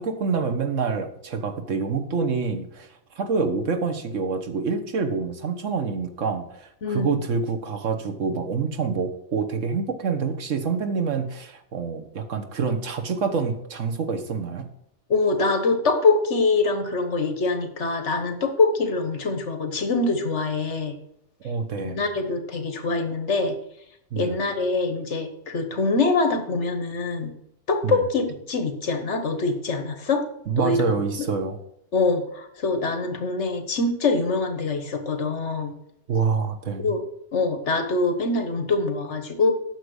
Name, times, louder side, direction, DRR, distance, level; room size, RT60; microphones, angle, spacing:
voice 1, 0.0-2.9 3.1-14.7 21.4-22.0 24.1-24.4 27.8-28.0 30.5-31.6 36.1-36.9, right 5 dB, 85° right, 5 dB, 1.5 m, -26 dB
voice 2, 6.8-7.2 15.1-21.0 21.8-23.5 24.2-27.3 27.7-30.2 30.6-30.8 31.9-35.7 36.8-37.0 37.3-39.5, left 3 dB, 70° left, 7 dB, 1.5 m, -24 dB
9.0 x 6.7 x 6.4 m, 0.76 s
omnidirectional pair, 1.3 m